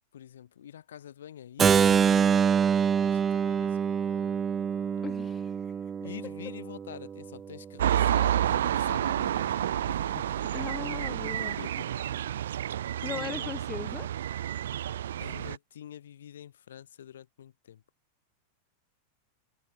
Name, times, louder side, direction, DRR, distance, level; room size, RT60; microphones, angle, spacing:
voice 1, 0.1-2.6 3.0-4.5 4.8-5.2 6.0-9.5 9.9-10.4 11.6-12.3 13.1-13.5 15.2-17.8, left 10 dB, 65° left, 5.5 m, -46 dB
Keyboard (musical), 1.6-7.4, right 7 dB, 20° right, 0.9 m, -26 dB
voice 2, 5.0-5.7 10.5-11.6 12.9-14.1, left 8 dB, 20° left, 1.2 m, -39 dB
sound 1, 7.8-15.6, right 11 dB, 60° right, 0.6 m, -29 dB
figure-of-eight pair, 90°, 0 cm